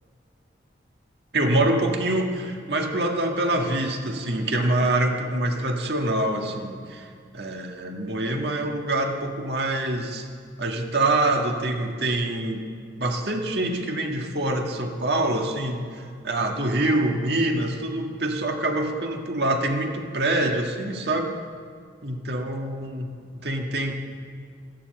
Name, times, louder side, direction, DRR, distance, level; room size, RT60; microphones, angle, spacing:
voice 1, 1.3-7.1 7.3-10.3 10.6-12.7 13.0-21.3 22.0-23.0 23.4-23.9, right 1 dB, 70° right, 2 dB, 1.7 m, -25 dB
14.5 x 11.5 x 8.4 m, 2.2 s
head